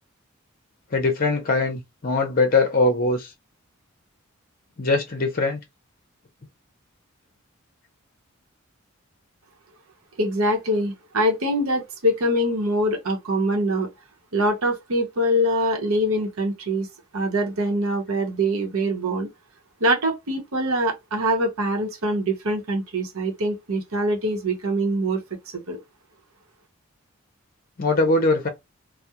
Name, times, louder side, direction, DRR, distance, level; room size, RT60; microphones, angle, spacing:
voice 1, 0.9-3.3 4.8-5.6 27.8-28.5, left 3 dB, 40° left, 0.6 m, -21 dB
voice 2, 10.2-13.9 14.3-16.9 17.1-19.3 19.8-25.2 25.5-25.8, right 1 dB, 75° right, 0.8 m, -24 dB
2.3 x 2.0 x 2.8 m
head